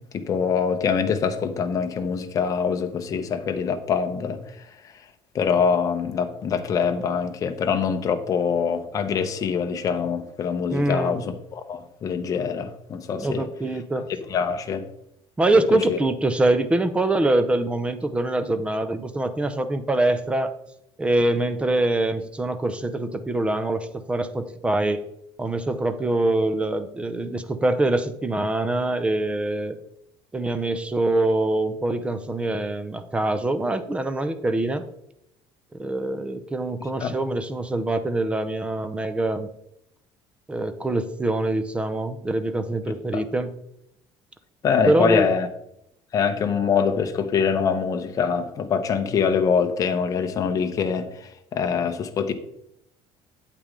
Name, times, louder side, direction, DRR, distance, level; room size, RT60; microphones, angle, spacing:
voice 1, 0.1-4.9 5.3-13.5 14.3-14.9 15.7-16.0 37.0-37.2 43.1-43.2 44.6-45.5 46.1-52.3, left 6 dB, 35° left, 0.9 m, -24 dB
voice 2, 10.7-11.2 13.2-14.0 15.4-20.5 21.0-25.0 25.4-29.8 30.3-34.8 35.8-39.5 40.5-43.5 44.9-45.3, right 2 dB, 10° right, 0.6 m, -24 dB
8.6 x 8.4 x 3.7 m
cardioid pair, 160°, 11 cm